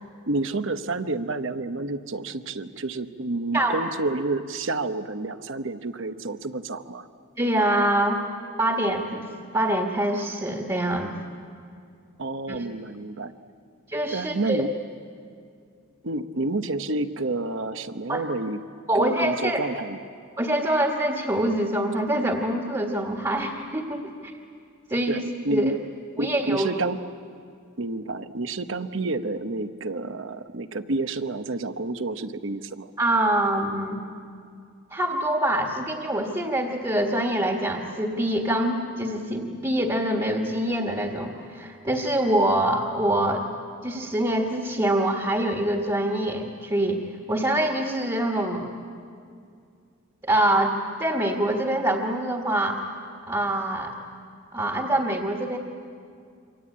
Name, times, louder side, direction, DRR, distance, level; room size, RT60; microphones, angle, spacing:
voice 1, 0.3-7.1 12.2-13.3 14.1-14.7 16.0-18.6 18.9-20.1 25.1-25.8 26.2-27.0 27.8-32.9, right 2 dB, 60° right, 10 dB, 1.0 m, -29 dB
voice 2, 7.4-8.2 8.6-9.3 9.5-11.1 12.5-12.7 13.9-14.6 18.1-18.2 18.9-19.6 20.4-24.1 24.9-25.7 26.2-26.7 33.0-34.0 34.9-43.5 43.8-48.7 50.2-52.8 53.3-53.9 54.5-55.6, right 1 dB, 20° right, 0 dB, 1.7 m, -25 dB
27.5 x 25.0 x 8.6 m, 2.3 s
head